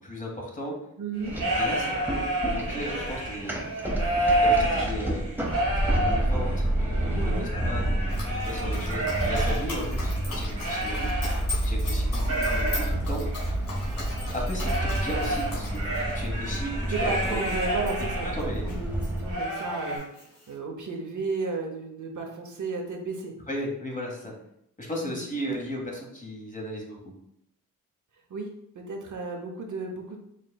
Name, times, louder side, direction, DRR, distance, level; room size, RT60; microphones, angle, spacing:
voice 1, 0.0-0.8 1.6-3.7 4.4-5.4 5.8-8.0 8.4-11.3 11.6-13.2 14.3-17.4 18.2-18.6 23.5-24.3 24.8-27.1, equal, 25° left, -1 dB, 1.1 m, -36 dB
voice 2, 1.0-1.4 7.1-7.5 16.8-23.3 25.0-25.2 28.3-28.5 28.7-30.2, right 3 dB, 65° right, 2 dB, 0.8 m, -34 dB
sound 1, 1.1-11.7 12.0-18.4 18.8-18.9 19.3-20.0, right 1 dB, 80° right, 1.5 m, -30 dB
sound 2, 1.2-19.3, right 1 dB, 5° right, 0.7 m, -29 dB
Dog, 8.1-19.2 19.5-20.5, left 2 dB, 90° left, 1.3 m, -40 dB
4.9 x 3.2 x 2.2 m, 0.76 s
wide cardioid pair, 75°, 33 cm